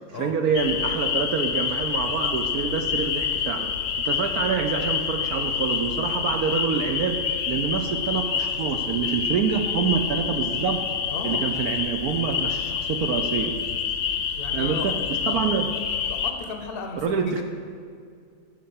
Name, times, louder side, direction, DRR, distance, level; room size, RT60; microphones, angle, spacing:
voice 1, 0.1-3.7 4.0-10.8 11.2-13.5 14.5-15.7 17.0-17.4, right 6 dB, 70° right, 5 dB, 1.0 m, -26 dB
sound 1, 0.5-16.3, left 7 dB, 70° left, 1.2 m, -27 dB
voice 2, 11.1-11.5 14.2-14.9 15.2-15.5 16.1-17.4, left 3 dB, 45° left, 4 dB, 0.8 m, -35 dB
11.0 x 4.5 x 7.0 m, 2.2 s
omnidirectional pair, 1.9 m